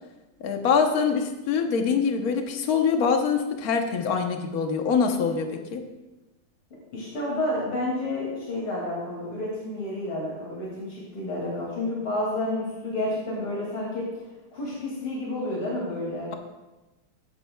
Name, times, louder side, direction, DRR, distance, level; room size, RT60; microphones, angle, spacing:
voice 1, 0.4-5.8, left 6 dB, 50° left, 4 dB, 1.2 m, -24 dB
voice 2, 6.9-14.0 14.5-16.3, left 1 dB, 70° left, -5 dB, 3.4 m, -30 dB
15.5 x 10.0 x 2.3 m, 1.1 s
omnidirectional pair, 2.4 m